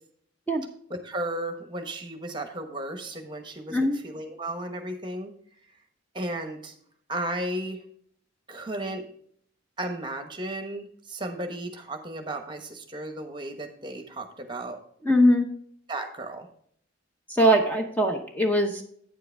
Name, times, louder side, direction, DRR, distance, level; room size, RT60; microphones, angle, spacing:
voice 1, 0.9-5.3 6.1-6.7 7.1-7.8 8.5-9.1 9.8-14.8 15.9-16.5, right 1 dB, 25° right, 5 dB, 1.1 m, -34 dB
voice 2, 15.0-15.5 17.3-18.8, equal, 10° left, 2 dB, 0.8 m, -21 dB
9.2 x 7.6 x 3.4 m, 0.63 s
head